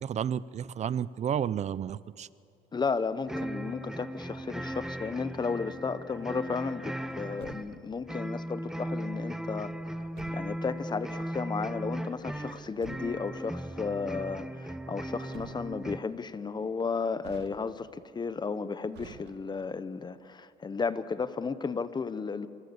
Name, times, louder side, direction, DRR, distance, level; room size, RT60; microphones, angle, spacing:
voice 1, 0.0-2.3, right 9 dB, 40° right, 19 dB, 0.6 m, -31 dB
voice 2, 2.7-9.8 10.3-22.5, left 5 dB, 25° left, 14 dB, 1.0 m, -34 dB
sound 1, 3.3-16.0, right 1 dB, 5° right, 0.9 m, -37 dB
Truck, 7.1-8.1 9.9-10.7 12.4-13.4 15.0-16.0 17.2-18.0 18.9-19.8, right 9 dB, 80° right, 1.7 m, -51 dB
27.5 x 22.0 x 8.2 m, 2.5 s
cardioid pair, 110°, 17 cm